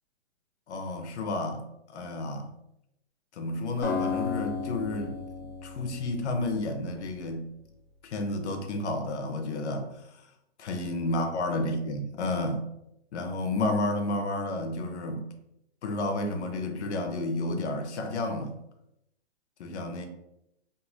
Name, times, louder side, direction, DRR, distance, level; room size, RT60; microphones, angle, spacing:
voice 1, 0.7-2.5 3.3-7.5 8.0-9.9 10.6-12.7 13.1-15.2 15.8-18.5 19.6-20.1, left 2 dB, 80° left, 5 dB, 0.7 m, -31 dB
Acoustic guitar, 3.8-7.0, left 5 dB, 20° left, 0.5 m, -34 dB
3.0 x 2.5 x 2.4 m, 0.83 s
hypercardioid pair, 155°, 33 cm